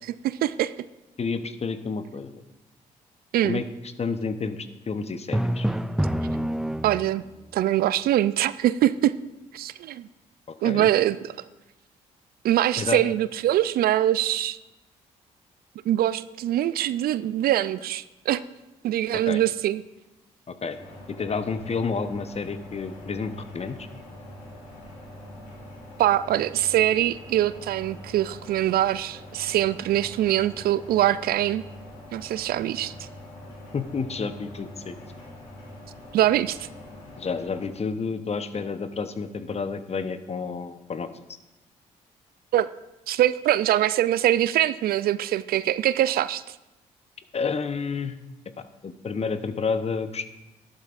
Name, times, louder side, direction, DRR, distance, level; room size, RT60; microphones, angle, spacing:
voice 1, 0.0-0.9 3.3-3.6 6.8-7.2 7.5-9.1 9.5-10.1 10.6-11.3 12.4-14.6 15.9-18.4 18.8-19.8 26.0-31.6 32.1-33.1 36.1-36.7 42.5-42.7 43.1-46.5, right 13 dB, 65° right, 16 dB, 0.4 m, -23 dB
voice 2, 1.2-2.4 3.4-3.6 4.0-5.7 10.5-10.9 12.8-13.0 19.3-19.4 20.5-20.8 21.1-23.8 33.7-34.9 37.2-41.1 47.3-48.1 48.8-50.2, left 5 dB, 40° left, 10 dB, 0.9 m, -30 dB
Drum, 5.3-7.3, right 1 dB, 5° right, 0.5 m, -26 dB
sound 1, 20.7-37.6, left 1 dB, 85° left, 2.7 m, -44 dB
13.0 x 11.5 x 2.5 m, 0.99 s
hypercardioid pair, 45°, 17 cm